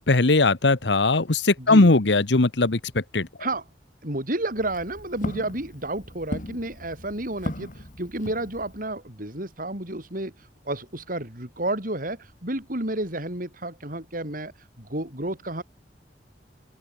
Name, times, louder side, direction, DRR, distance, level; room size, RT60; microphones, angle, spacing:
voice 1, 0.0-3.3, left 2 dB, 85° left, 1.3 m, -19 dB
voice 2, 4.0-7.7 8.0-10.3 10.7-14.5 14.8-15.6, right 1 dB, 50° right, 7.7 m, -31 dB
Walk footsteps, 4.4-8.9, left 1 dB, 50° left, 4.0 m, -37 dB
open air
head